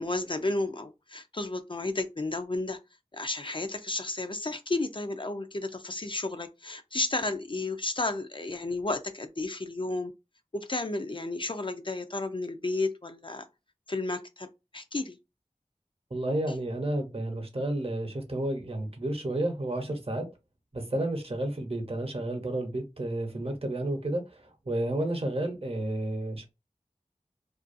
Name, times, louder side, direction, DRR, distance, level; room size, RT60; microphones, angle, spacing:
voice 1, 0.0-2.8 3.1-10.1 10.5-13.5 13.9-15.2, left 2 dB, 40° left, 0.4 m, -32 dB
voice 2, 16.1-20.3 20.7-26.5, right 1 dB, 50° right, 0.7 m, -31 dB
2.5 x 2.2 x 2.5 m
wide cardioid pair, 45°, 13 cm